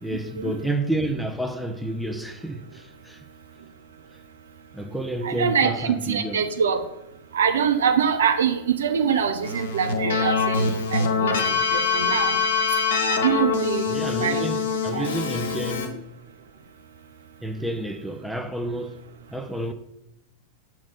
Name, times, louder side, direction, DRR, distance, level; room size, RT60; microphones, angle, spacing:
voice 1, 0.0-3.2 4.7-6.4 13.9-16.0 17.4-19.0 19.3-19.7, right 1 dB, ahead, 0.5 m, -30 dB
voice 2, 5.2-6.8 7.3-12.4 13.1-14.5 14.9-15.1, right 7 dB, 65° right, 0.6 m, -24 dB
Keyboard (musical), 9.4-15.9, left 5 dB, 60° left, 1.0 m, -24 dB
7.3 x 3.0 x 5.6 m
figure-of-eight pair, 90°, 0 cm